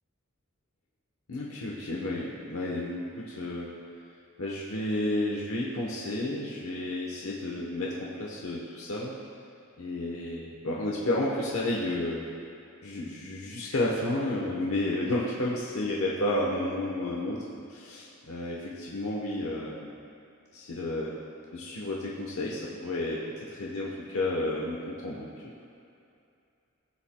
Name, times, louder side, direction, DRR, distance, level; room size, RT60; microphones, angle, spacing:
voice 1, 1.3-3.7 4.4-9.1 9.8-12.3 12.8-17.4 17.7-19.9 20.5-21.1 21.5-25.3, left 1 dB, 90° left, -4 dB, 1.0 m, -31 dB
15.5 x 7.3 x 2.2 m, 2.6 s
head